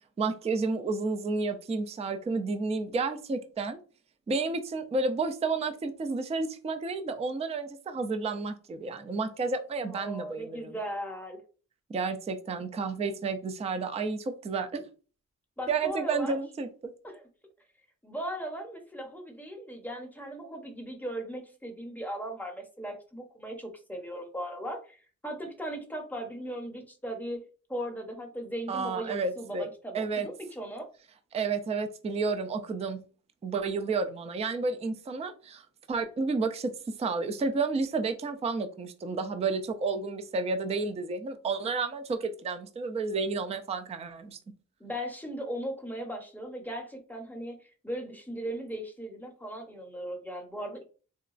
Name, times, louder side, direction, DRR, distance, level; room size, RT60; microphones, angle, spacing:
voice 1, 0.2-3.8 4.3-10.7 11.9-14.8 15.7-16.7 28.7-29.7 29.9-30.3 31.3-33.0 33.4-44.4, right 4 dB, 20° right, 0.3 m, -31 dB
voice 2, 9.8-11.4 15.6-16.4 17.0-17.2 18.0-30.9 44.8-50.8, equal, 5° left, 0.7 m, -38 dB
3.8 x 2.2 x 2.4 m
wide cardioid pair, 115°, 31 cm